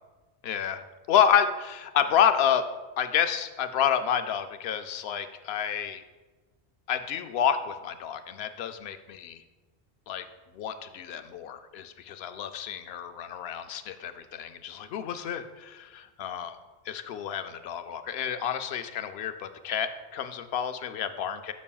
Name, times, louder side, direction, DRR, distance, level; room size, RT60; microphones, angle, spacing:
voice 1, 0.4-0.8 1.1-2.6 3.0-6.0 6.9-9.4 10.1-10.3 10.6-16.5 16.9-21.5, left 8 dB, 70° left, 9 dB, 0.8 m, -29 dB
12.5 x 6.2 x 2.3 m, 1.2 s
omnidirectional pair, 1.1 m